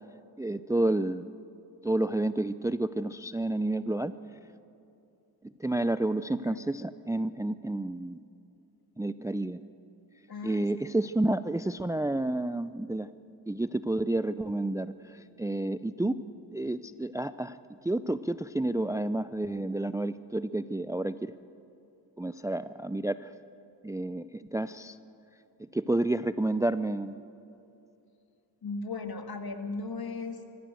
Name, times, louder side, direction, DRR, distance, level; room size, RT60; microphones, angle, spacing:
voice 1, 0.4-1.3 1.8-4.1 5.6-8.2 9.0-9.6 10.4-13.1 13.5-16.2 16.5-21.3 22.2-23.3 23.8-25.0 25.7-27.2, right 2 dB, 5° right, 14 dB, 0.5 m, -30 dB
voice 2, 10.3-10.7 16.0-16.2 28.6-30.6, left 3 dB, 55° left, 6 dB, 2.4 m, -37 dB
25.0 x 15.0 x 7.8 m, 2.7 s
cardioid pair, 50°, 45 cm